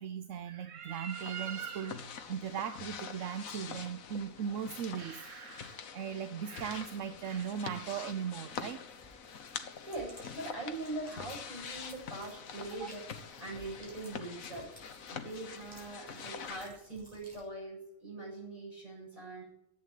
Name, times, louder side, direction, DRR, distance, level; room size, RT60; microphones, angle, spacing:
voice 1, 0.0-8.8 12.8-12.9, right 8 dB, 70° right, 11 dB, 1.0 m, -38 dB
sound 1, 1.1-16.7, left 6 dB, 85° left, 1.4 m, -45 dB
sound 2, 6.5-17.4, equal, 5° left, 5.6 m, -58 dB
voice 2, 9.8-14.7 15.1-19.4, right 2 dB, 25° right, -5 dB, 7.6 m, -42 dB
11.5 x 8.3 x 9.1 m, 0.76 s
omnidirectional pair, 1.4 m